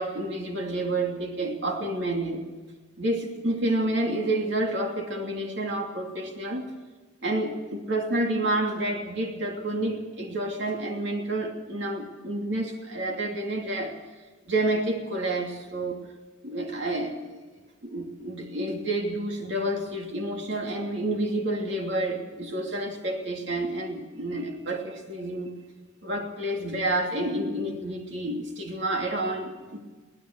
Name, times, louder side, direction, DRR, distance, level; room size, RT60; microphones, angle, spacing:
voice 1, 0.0-2.5 3.0-6.6 7.2-14.0 14.5-16.0 16.4-17.4 17.8-25.5 26.0-29.8, right 1 dB, 60° right, 2 dB, 2.9 m, -29 dB
23.5 x 17.5 x 6.4 m, 1.3 s
head